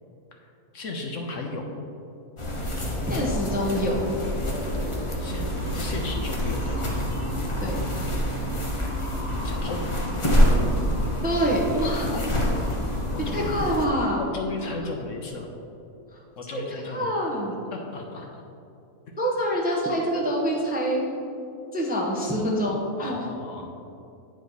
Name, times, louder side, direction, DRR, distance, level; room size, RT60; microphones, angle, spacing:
voice 1, 0.7-1.7 5.2-5.5 5.7-6.9 9.4-9.8 12.0-12.4 13.1-13.5 14.2-15.5 16.4-17.1 17.7-18.4 23.0-23.7, left 3 dB, 60° left, 2 dB, 1.0 m, -35 dB
sound 1, 2.4-13.9, equal, 25° left, 0.7 m, -26 dB
voice 2, 3.1-4.0 7.6-7.8 11.2-12.2 13.3-14.2 14.6-14.7 16.1-16.2 16.5-17.5 19.2-21.1 21.7-23.3, equal, 10° right, -2 dB, 0.7 m, -26 dB
9.3 x 5.1 x 4.0 m, 2.7 s
omnidirectional pair, 1.6 m